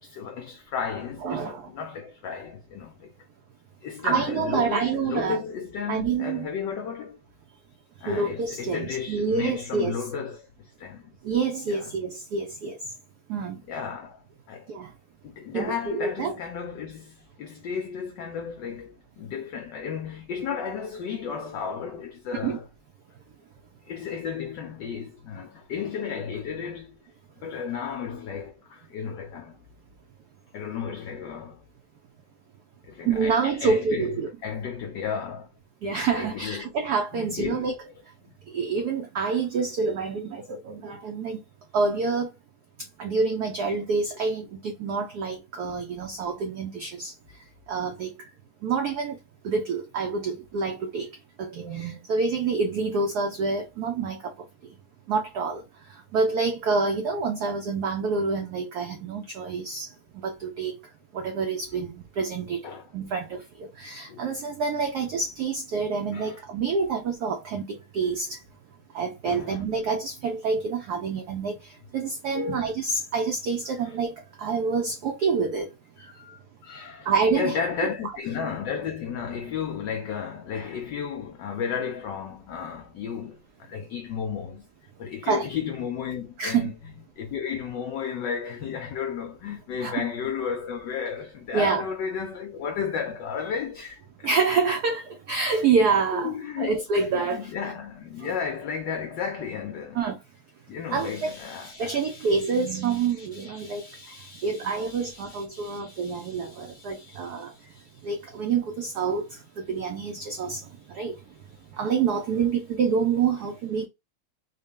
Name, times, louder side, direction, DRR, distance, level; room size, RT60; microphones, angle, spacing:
voice 1, 0.0-3.1 3.8-7.2 8.0-11.2 11.7-11.9 13.7-14.2 14.5-14.7 15.2-22.6 23.9-27.0 27.4-29.6 30.5-31.6 32.8-35.5 36.1-36.7 37.1-37.7 62.6-62.9 64.1-64.3 66.1-66.4 69.2-69.6 72.3-72.7 73.8-74.0 75.2-75.3 76.0-84.7 85.0-86.7 87.2-94.3 96.1-96.8 97.1-100.0 100.7-108.1, left 7 dB, 70° left, 1.1 m, -34 dB
voice 2, 1.2-1.7 4.0-5.4 5.9-6.5 8.1-10.0 11.2-12.8 13.3-13.6 14.7-14.9 15.5-16.4 22.3-22.6 33.0-34.3 35.8-37.7 38.5-41.4 41.7-42.3 43.0-47.1 47.7-48.1 48.6-49.2 49.4-51.1 51.4-54.3 55.1-55.6 56.1-59.9 60.2-60.7 61.1-62.6 62.9-68.4 68.9-71.6 71.9-74.1 74.4-75.7 77.1-77.6 85.2-85.5 86.4-86.7 89.8-90.0 91.5-91.8 94.2-97.5 99.9-100.2 100.9-101.3 101.8-103.8 104.4-107.5 108.0-109.3 109.6-110.6 110.9-111.1 111.8-113.9, right 5 dB, 70° right, 0.9 m, -27 dB
4.0 x 2.2 x 3.5 m
omnidirectional pair, 2.4 m